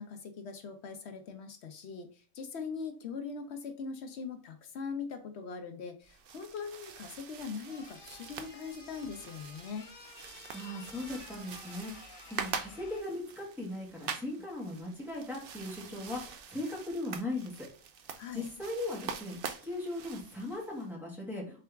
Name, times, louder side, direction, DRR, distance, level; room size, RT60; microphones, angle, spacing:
voice 1, 0.0-9.9 18.2-18.5, left 5 dB, 60° left, 6 dB, 0.8 m, -41 dB
sound 1, 6.0-20.9, right 6 dB, 60° right, 0.6 m, -45 dB
sound 2, 7.7-13.0, left 4 dB, 75° left, 1.3 m, -52 dB
voice 2, 10.5-11.9 12.3-17.5 18.3-21.6, left 2 dB, ahead, -4 dB, 1.5 m, -38 dB
3.8 x 3.4 x 3.4 m, 0.38 s
omnidirectional pair, 1.4 m